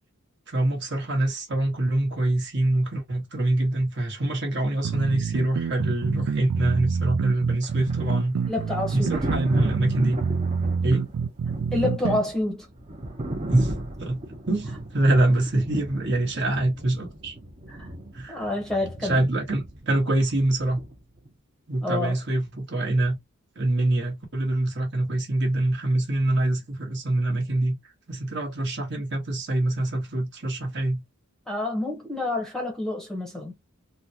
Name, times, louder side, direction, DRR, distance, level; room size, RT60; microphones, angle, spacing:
voice 1, 0.5-8.4 8.9-10.2 10.8-11.1 13.5-13.7 14.0-14.2 14.5-17.3 18.1-18.4 19.0-20.8 21.7-23.2 23.6-27.8 28.1-31.0, right 1 dB, 50° right, 1.2 m, -25 dB
sound 1, 4.8-12.2, right 5 dB, 75° right, 0.4 m, -27 dB
Thunder, 7.6-21.3 22.9-23.1, right 1 dB, 30° right, 0.7 m, -36 dB
voice 2, 8.5-9.2 11.7-12.7 17.7-17.9 18.3-19.3 21.8-22.1 31.5-33.7, left 2 dB, ahead, 0.8 m, -28 dB
3.8 x 2.2 x 2.7 m
head